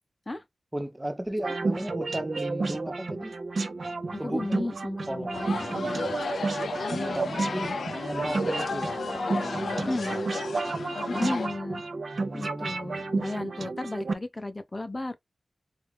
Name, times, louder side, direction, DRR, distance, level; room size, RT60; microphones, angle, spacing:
voice 1, 0.7-3.3 4.2-4.7 5.1-6.2 7.2-10.2 12.1-13.0, right 1 dB, 15° right, 0.7 m, -35 dB
sound 1, 1.4-14.1, right 3 dB, 65° right, 0.5 m, -32 dB
voice 2, 4.1-6.1 6.9-7.8 9.9-10.2 11.1-11.8 12.3-15.2, left 2 dB, 30° left, 0.6 m, -34 dB
sound 2, 5.3-11.5, left 4 dB, 90° left, 0.4 m, -33 dB
2.7 x 2.4 x 3.4 m
wide cardioid pair, 65°, 0 cm